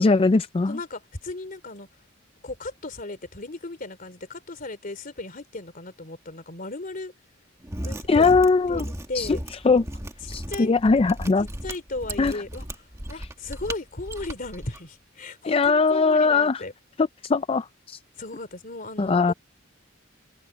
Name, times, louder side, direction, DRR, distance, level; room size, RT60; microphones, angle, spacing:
voice 1, 0.0-0.8 8.1-8.8 9.1-9.9 10.3-11.5 12.2-12.4 13.1-13.3 15.4-16.6 17.0-18.0 19.0-19.3, left 4 dB, 30° left, 0.4 m, -21 dB
voice 2, 0.7-1.9 2.4-7.1 7.8-8.3 8.7-9.4 10.5-10.7 11.6-12.6 13.1-16.7 18.2-19.3, left 2 dB, 45° left, 3.1 m, -36 dB
Mechanisms, 7.6-14.8, right 1 dB, 15° right, 1.9 m, -36 dB
head